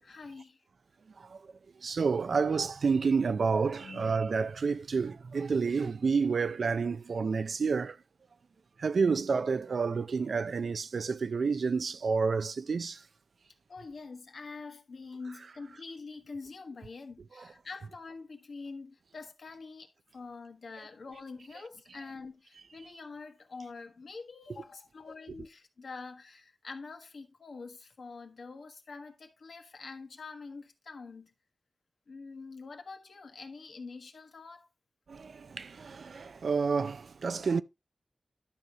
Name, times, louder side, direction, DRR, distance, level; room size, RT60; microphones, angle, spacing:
voice 1, 0.0-0.6 3.8-4.3 13.7-31.3 32.1-34.7, left 4 dB, 75° left, 1.5 m, -45 dB
voice 2, 1.8-8.0 8.8-13.0 35.1-37.6, right 5 dB, 75° right, 0.4 m, -29 dB
11.5 x 6.3 x 2.9 m
wide cardioid pair, 80°, 0 cm